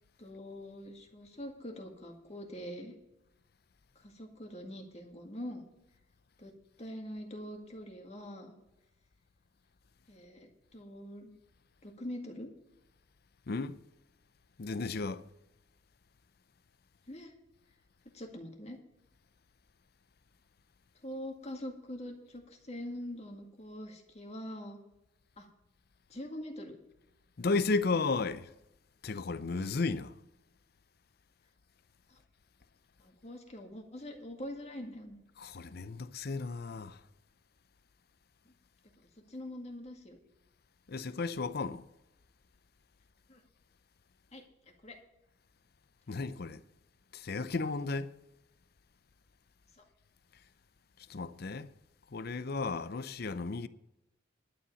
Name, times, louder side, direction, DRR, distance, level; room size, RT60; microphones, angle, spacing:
voice 1, 0.2-2.9 4.0-5.6 6.4-6.5 6.8-8.6 10.1-11.3 11.8-12.5 17.1-17.3 18.1-18.8 21.0-24.8 25.4-25.5 26.1-26.8 32.1-32.2 33.0-35.1 38.5-38.6 39.0-40.2 43.3-43.4 44.3-44.4 44.8-45.0 49.8-49.9, equal, 35° left, 2.0 m, -44 dB
voice 2, 14.6-15.2 27.4-28.5 29.0-30.1 35.4-37.0 40.9-41.8 46.1-46.6 47.1-48.1 51.1-51.7 52.1-53.7, left 3 dB, 55° left, 0.6 m, -34 dB
11.5 x 7.6 x 7.0 m
head